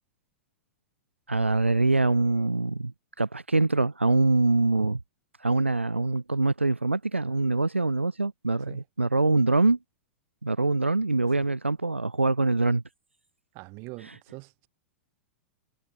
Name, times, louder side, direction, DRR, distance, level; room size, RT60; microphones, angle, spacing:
voice 1, 1.3-2.9 3.2-5.0 5.4-9.8 10.4-12.8, right 3 dB, 90° right, 0.5 m, -24 dB
voice 2, 13.5-14.7, right 27 dB, 40° right, 2.4 m, -43 dB
figure-of-eight pair, 100°, 6 cm